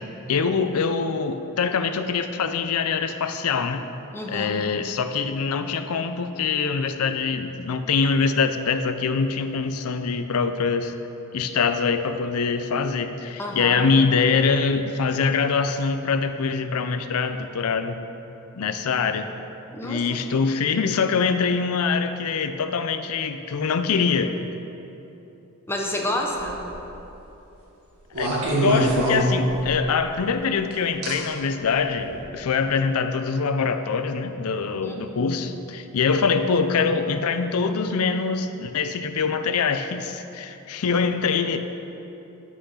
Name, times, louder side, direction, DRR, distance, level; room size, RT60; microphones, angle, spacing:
voice 1, 0.3-3.8 4.3-10.9 11.3-18.0 18.6-19.3 19.8-24.4 28.2-41.6, left 5 dB, 75° left, 9 dB, 0.5 m, -24 dB
voice 2, 4.1-4.6 13.4-13.8 19.7-20.2 25.7-26.6 34.7-35.0 40.8-41.0, left 1 dB, 10° left, 0 dB, 0.8 m, -30 dB
sound 1, 26.3-26.8 28.1-29.9 31.0-31.1 32.0-32.2, right 1 dB, 90° right, 1.8 m, -24 dB
7.9 x 6.2 x 5.6 m, 3.0 s
head